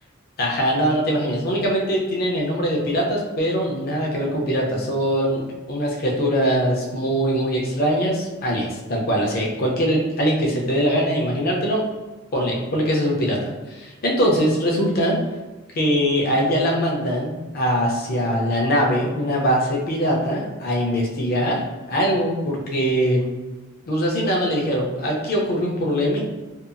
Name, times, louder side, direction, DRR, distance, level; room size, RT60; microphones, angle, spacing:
voice 1, 0.4-11.8 12.3-13.4 13.8-15.2 15.7-21.6 21.9-23.3 23.9-26.2, equal, 45° left, -1 dB, 0.6 m, -22 dB
2.7 x 2.4 x 2.5 m, 1.2 s
head